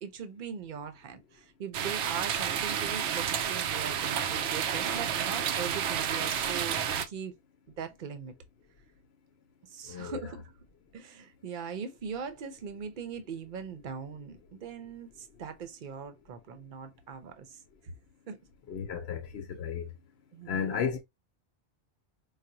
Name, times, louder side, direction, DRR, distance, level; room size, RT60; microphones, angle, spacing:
voice 1, 0.0-7.3 7.8-8.3 9.7-10.4 10.9-17.6 18.3-18.4 20.3-20.8, right 6 dB, 50° right, 0.8 m, -40 dB
sound 1, 1.7-7.0, right 8 dB, 85° right, 0.9 m, -30 dB
voice 2, 9.9-10.2 18.7-19.9 20.5-21.0, left 7 dB, 65° left, 0.9 m, -33 dB
4.9 x 2.1 x 2.8 m
omnidirectional pair, 1.2 m